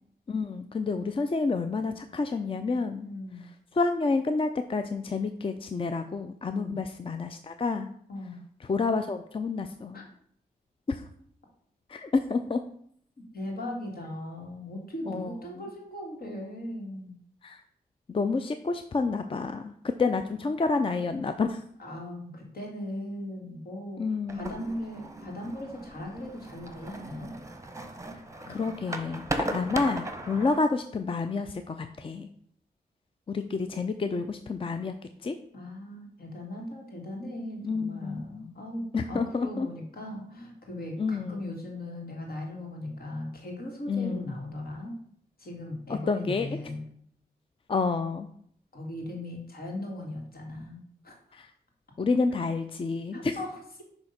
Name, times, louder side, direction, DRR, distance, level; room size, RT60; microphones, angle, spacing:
voice 1, 0.3-3.1 3.7-7.9 8.6-10.0 10.9-11.0 11.9-12.6 15.1-15.3 17.4-17.6 18.1-19.7 20.0-21.6 24.0-24.5 28.5-32.3 33.3-34.9 35.2-35.4 37.6-38.5 38.9-39.7 41.0-41.5 43.9-44.3 46.1-46.5 47.7-48.3 51.3-51.5 52.0-53.4, left 4 dB, 35° left, 8 dB, 0.4 m, -29 dB
voice 2, 3.0-3.4 6.5-6.8 8.1-8.4 9.9-10.0 13.3-17.1 21.8-24.0 24.3-27.3 28.4-28.9 35.5-45.0 45.4-46.8 48.7-51.1 53.1-53.8, left 1 dB, 65° left, 0 dB, 1.9 m, -38 dB
sound 1, 24.3-30.6, right 1 dB, 20° right, 0.9 m, -37 dB
6.1 x 2.9 x 5.6 m, 0.64 s
cardioid pair, 50°, 16 cm